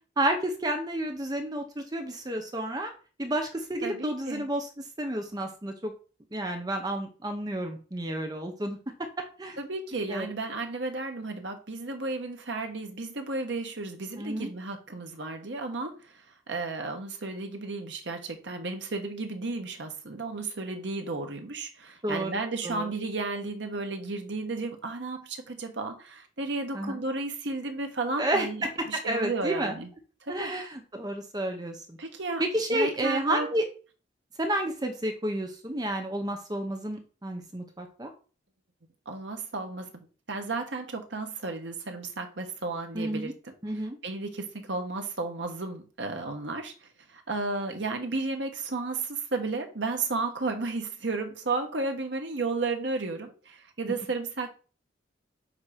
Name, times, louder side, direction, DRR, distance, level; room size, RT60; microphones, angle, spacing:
voice 1, 0.2-2.9 3.2-5.9 6.3-8.8 9.4-9.6 10.1-10.3 14.1-14.5 22.0-22.4 22.6-22.9 26.7-27.0 28.2-29.7 30.3-32.0 32.4-33.7 34.4-38.1 42.9-43.3 43.6-44.0, right 1 dB, 20° right, 0.8 m, -31 dB
voice 2, 3.8-4.4 9.6-16.0 16.5-29.9 30.2-30.5 32.0-32.4 32.7-33.5 39.1-43.5 44.0-46.7 47.1-54.5, right 3 dB, 75° right, 1.1 m, -33 dB
7.3 x 2.8 x 5.0 m
head